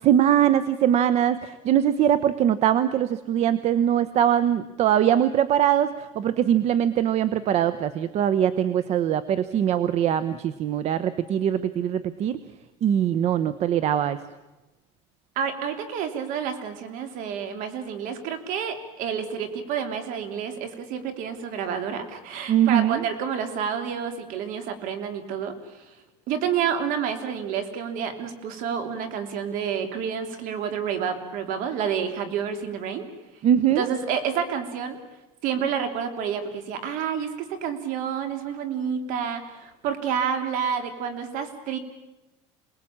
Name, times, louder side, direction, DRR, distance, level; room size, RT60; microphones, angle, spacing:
voice 1, 0.0-12.4 12.8-14.2 22.5-23.0 33.4-33.9, right 10 dB, 45° right, 14 dB, 1.0 m, -22 dB
voice 2, 15.4-25.9 26.3-33.1 33.7-35.0 35.4-41.8, right 7 dB, 60° right, 8 dB, 3.4 m, -29 dB
27.5 x 20.0 x 8.8 m, 1.1 s
cardioid pair, 135°, 15 cm